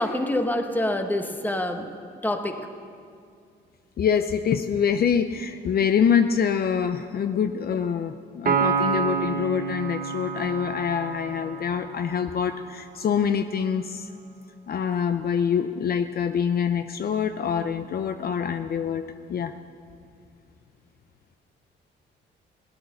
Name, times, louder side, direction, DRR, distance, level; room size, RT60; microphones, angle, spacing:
voice 1, 0.0-1.8 2.2-2.5, left 1 dB, 10° left, 5 dB, 1.3 m, -26 dB
voice 2, 4.0-14.1 14.7-19.0 19.3-19.5, left 7 dB, 50° left, 9 dB, 0.6 m, -25 dB
Piano, 8.5-12.1, right 6 dB, 45° right, 1.3 m, -27 dB
16.5 x 10.5 x 6.6 m, 2.3 s
cardioid pair, 90°, 20 cm